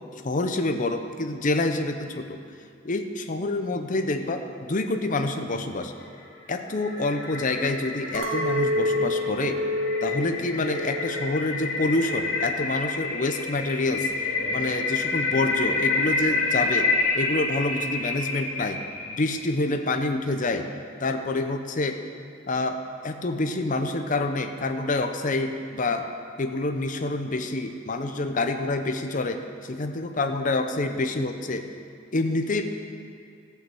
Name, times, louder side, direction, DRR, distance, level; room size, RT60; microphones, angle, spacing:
voice 1, 0.2-2.4 2.8-5.9 6.5-9.6 10.0-14.1 14.5-16.9 17.1-18.8 19.1-20.7 21.0-22.0 22.5-26.1 26.4-31.7 32.1-32.6, left 2 dB, 40° left, 6 dB, 0.7 m, -27 dB
sound 1, 6.1-19.5, left 3 dB, 85° left, 2.8 m, -29 dB
Chink clink, 8.1-12.5 12.9-13.5, left 1 dB, 70° right, 1.3 m, -29 dB
14.5 x 5.7 x 7.6 m, 2.3 s
head